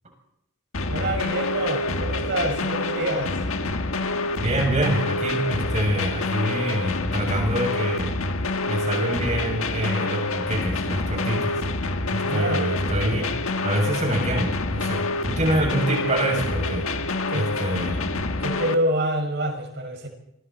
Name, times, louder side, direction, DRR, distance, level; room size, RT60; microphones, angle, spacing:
sound 1, 0.7-18.7, left 2 dB, 75° left, 1.5 m, -27 dB
voice 1, 0.9-3.4 12.2-12.7 13.2-13.3 17.3-17.5 18.4-20.1, right 1 dB, 55° right, 4 dB, 5.7 m, -27 dB
voice 2, 4.4-8.1 8.7-16.9 17.3-18.0, right 1 dB, 35° right, 1 dB, 7.4 m, -26 dB
26.5 x 24.5 x 4.4 m, 0.82 s
head